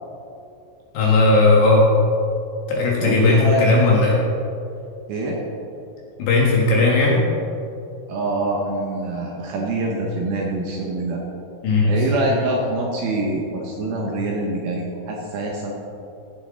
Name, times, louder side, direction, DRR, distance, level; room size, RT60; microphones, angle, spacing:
voice 1, 0.9-1.9 2.7-4.2 6.2-7.2 11.6-12.1, left 3 dB, 70° left, -3 dB, 3.2 m, -16 dB
voice 2, 3.0-3.7 5.1-5.4 8.1-11.2 11.8-15.7, right 2 dB, 70° right, -1 dB, 2.4 m, -25 dB
16.5 x 7.7 x 3.8 m, 2.7 s
omnidirectional pair, 5.3 m